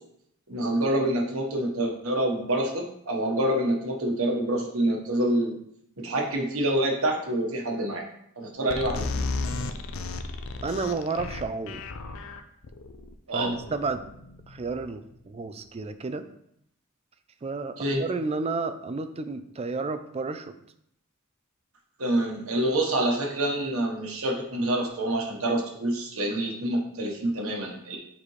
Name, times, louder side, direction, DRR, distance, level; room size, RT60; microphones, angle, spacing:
voice 1, 0.5-5.5 6.0-8.0 8.4-9.3 13.3-13.5 17.8-18.0 22.0-28.0, right 1 dB, 85° right, 0 dB, 1.3 m, -27 dB
sound 1, 8.7-15.1, left 3 dB, 70° left, 0.5 m, -34 dB
voice 2, 10.6-11.8 13.3-14.0 14.5-16.3 17.4-20.5, right 3 dB, 30° right, 10 dB, 0.4 m, -31 dB
7.3 x 4.2 x 3.2 m, 0.73 s
head